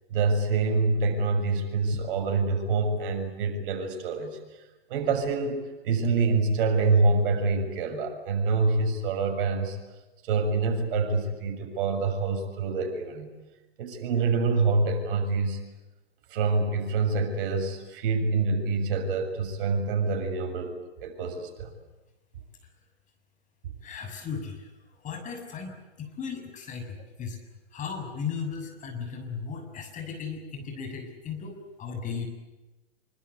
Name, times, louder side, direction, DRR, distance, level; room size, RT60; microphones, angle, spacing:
voice 1, 0.1-4.4 4.9-9.8 10.2-13.3 13.8-15.6 16.3-20.8 21.0-21.7, right 3 dB, 55° right, 5 dB, 7.0 m, -26 dB
voice 2, 23.8-24.7 25.0-27.4 27.7-32.3, left 6 dB, 25° left, 5 dB, 7.0 m, -36 dB
26.5 x 25.0 x 8.4 m, 1.1 s
hypercardioid pair, 125°, 32 cm